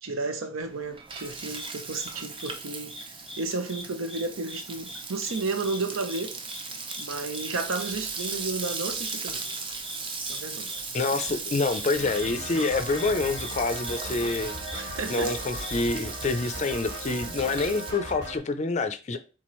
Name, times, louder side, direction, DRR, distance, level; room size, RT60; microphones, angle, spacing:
voice 1, 0.0-2.9 3.4-6.3 7.0-9.4 10.3-10.7 14.7-15.3, right 3 dB, 80° right, 0.8 m, -32 dB
Frying (food), 0.6-17.9, right 4 dB, 25° right, 0.5 m, -37 dB
sound 1, 1.5-1.7 2.0-2.1 2.4-2.5 2.9-3.4 3.7-4.6 4.9-5.0 5.3-5.4 5.6-5.8 6.1-6.2 6.5-6.6 6.9-7.0 7.3-7.5 7.8-7.9 8.2-8.3 8.6-8.7 9.0-9.1 9.4-9.6 9.8-10.0 10.3-10.4 10.7-10.8 11.2-11.3 11.7-11.8 12.1-12.3 12.6-12.7 13.0-13.1 13.4-13.5 13.8-14.0 14.2-14.4 14.6-14.8 15.1-15.2 15.6-15.7, left 1 dB, ahead, 0.8 m, -41 dB
voice 2, 10.9-19.2, left 3 dB, 35° left, 0.4 m, -27 dB
sound 2, 11.9-18.4, right 1 dB, 55° right, 1.7 m, -38 dB
4.3 x 3.7 x 3.1 m
head